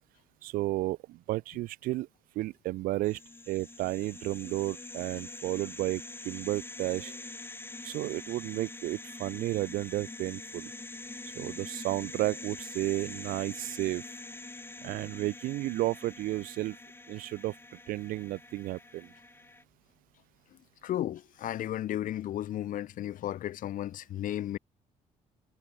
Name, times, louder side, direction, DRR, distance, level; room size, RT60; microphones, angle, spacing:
voice 1, 0.4-2.1 2.4-3.2 3.5-7.2 7.8-10.7 11.4-14.0 14.8-16.8 17.1-17.5 17.9-19.1, right 17 dB, 80° right, 0.5 m, -32 dB
sound 1, 3.0-19.6, left 2 dB, 15° left, 5.5 m, -45 dB
voice 2, 20.8-24.6, left 12 dB, 70° left, 2.4 m, -34 dB
cardioid pair, 100°, 14 cm